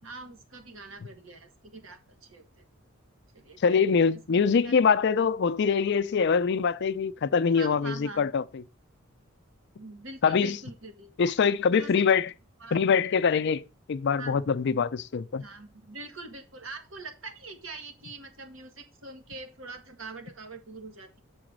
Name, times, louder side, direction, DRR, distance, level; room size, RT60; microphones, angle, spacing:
voice 1, 0.0-2.6 3.3-3.7 4.1-4.8 7.5-8.3 9.8-11.1 11.7-12.0 12.6-12.9 14.1-14.4 15.4-21.2, right 3 dB, 80° right, 1.6 m, -44 dB
voice 2, 3.6-8.6 10.2-10.6 11.2-12.3 12.7-13.6 13.9-15.4, left 6 dB, 60° left, 0.4 m, -24 dB
6.9 x 4.0 x 6.3 m
head